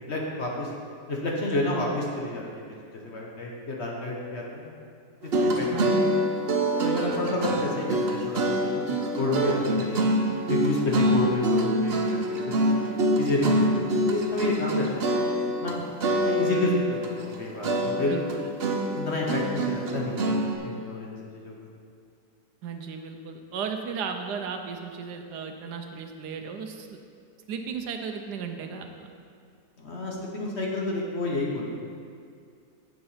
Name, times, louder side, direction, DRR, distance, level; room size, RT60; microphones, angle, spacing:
voice 1, 0.1-0.7 1.1-2.6 2.9-4.7 5.3-6.0 6.8-10.0 10.5-12.8 13.2-15.8 16.2-18.2 18.9-20.2 20.6-21.5 29.8-31.7, left 2 dB, 45° left, -2 dB, 1.2 m, -30 dB
sound 1, 5.2-15.7 16.0-17.4 17.6-20.5, right 1 dB, 50° right, 0.7 m, -25 dB
voice 2, 5.7-6.2 6.8-7.2 18.0-18.5 22.6-26.9 27.5-29.1, right 6 dB, 75° right, 5 dB, 1.3 m, -35 dB
7.7 x 7.0 x 5.6 m, 2.2 s
omnidirectional pair, 1.8 m